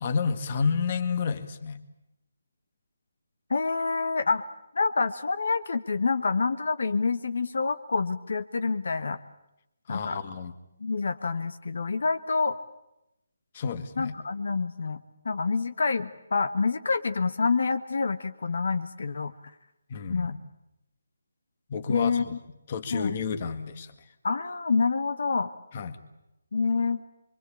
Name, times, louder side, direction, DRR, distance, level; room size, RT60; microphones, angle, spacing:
voice 1, 0.0-1.8 9.9-10.5 13.5-14.1 19.9-20.4 21.7-22.4 22.7-23.9 25.7-26.0, left 5 dB, 30° left, 10 dB, 1.7 m, -30 dB
voice 2, 3.5-4.4 4.7-9.2 9.9-10.2 10.8-12.6 14.0-19.3 20.1-20.3 21.9-22.2 22.9-23.1 24.2-25.5 26.5-27.0, left 4 dB, 65° left, 10 dB, 1.3 m, -27 dB
25.5 x 24.0 x 8.6 m, 0.85 s
hypercardioid pair, 170°, 0 cm